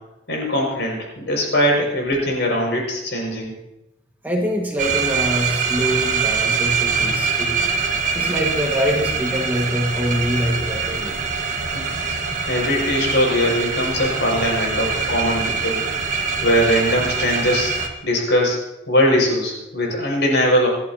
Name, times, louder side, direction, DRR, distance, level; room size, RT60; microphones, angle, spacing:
voice 1, 0.3-3.5 11.7-12.2 12.5-15.8 16.4-17.7 18.0-18.6 18.9-20.7, equal, 65° left, -1 dB, 6.1 m, -21 dB
voice 2, 4.2-7.6 8.2-11.2, equal, 10° right, -1 dB, 1.7 m, -24 dB
sound 1, 4.8-17.9, right 5 dB, 40° right, 1.6 m, -24 dB
28.0 x 11.5 x 2.9 m, 0.92 s
head